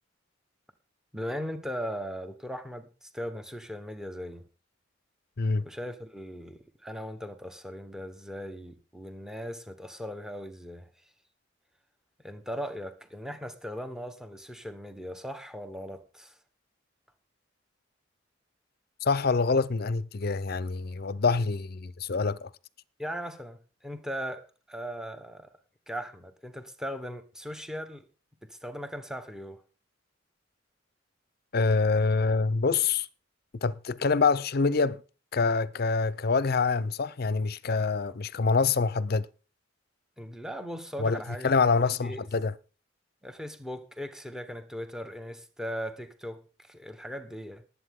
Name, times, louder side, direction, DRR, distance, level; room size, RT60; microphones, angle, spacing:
voice 1, 1.1-4.5 5.6-10.9 12.2-16.4 23.0-25.5 25.9-28.0 28.4-29.6 40.2-41.5 41.8-42.3 43.2-47.6, equal, 5° right, 1.2 m, -38 dB
voice 2, 19.0-22.5 31.5-33.1 33.6-35.0 35.3-39.3 41.0-42.5, left 4 dB, 55° left, 0.6 m, -26 dB
19.5 x 8.3 x 3.7 m
head